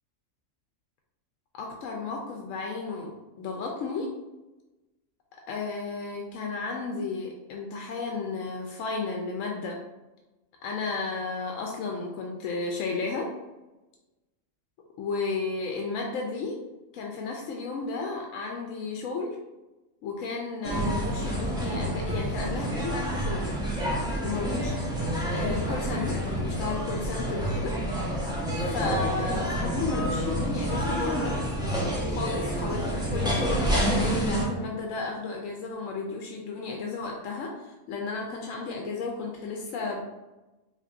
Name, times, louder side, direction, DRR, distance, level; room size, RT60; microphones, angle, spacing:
voice 1, 1.5-4.1 5.5-9.8 10.6-13.3 15.0-16.5 16.9-19.3 20.0-23.6 24.2-24.9 25.3-27.7 28.6-31.4 32.1-40.0, left 4 dB, 90° left, 1 dB, 1.0 m, -33 dB
sound 1, 20.6-34.5, right 1 dB, 5° right, 0.6 m, -28 dB
5.1 x 2.6 x 2.6 m, 1.1 s
omnidirectional pair, 1.3 m